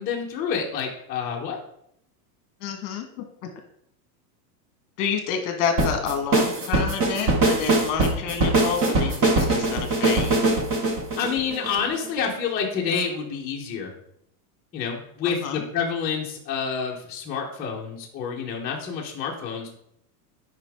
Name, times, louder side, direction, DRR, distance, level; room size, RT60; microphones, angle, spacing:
voice 1, 0.0-1.6 11.2-13.9 14.7-19.7, left 6 dB, 20° left, -4 dB, 0.9 m, -28 dB
voice 2, 2.6-3.1 5.0-10.6 15.2-15.7, left 7 dB, 45° left, 6 dB, 1.4 m, -29 dB
sound 1, 5.8-12.1, right 2 dB, 25° right, 1.1 m, -22 dB
9.4 x 5.1 x 3.5 m, 0.72 s
supercardioid pair, 165°, 49 cm